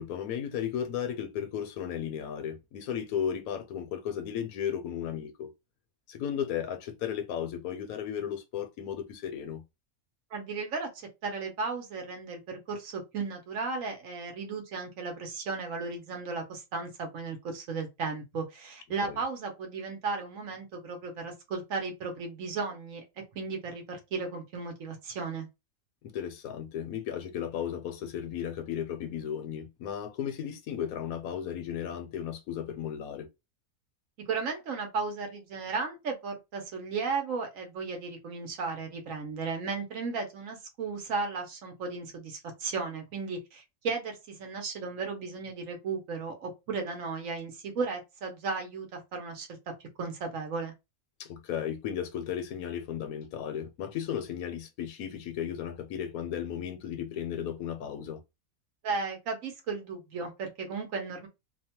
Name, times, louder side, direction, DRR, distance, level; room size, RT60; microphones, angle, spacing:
voice 1, 0.0-5.5 6.1-9.6 19.0-19.2 26.0-33.3 51.2-58.2, left 9 dB, 80° left, 1.1 m, -35 dB
voice 2, 10.3-23.0 23.3-25.5 34.3-49.7 50.0-50.7 58.8-61.3, right 4 dB, 65° right, 1.2 m, -35 dB
2.8 x 2.2 x 2.8 m
omnidirectional pair, 1.5 m